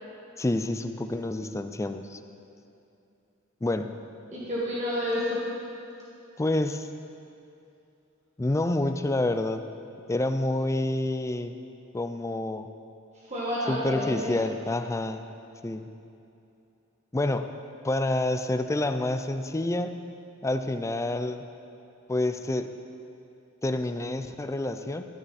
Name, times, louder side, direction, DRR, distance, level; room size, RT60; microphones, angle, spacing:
voice 1, 0.4-2.2 3.6-3.9 6.4-6.9 8.4-9.6 10.1-11.6 11.9-12.7 13.7-15.3 15.6-15.9 17.1-17.5 17.8-20.0 20.4-21.4 22.1-22.7 23.6-25.0, left 2 dB, 15° left, 8 dB, 0.4 m, -28 dB
voice 2, 4.3-5.4 13.3-14.4, left 1 dB, 35° right, -8 dB, 1.8 m, -29 dB
13.5 x 9.7 x 4.2 m, 2.8 s
head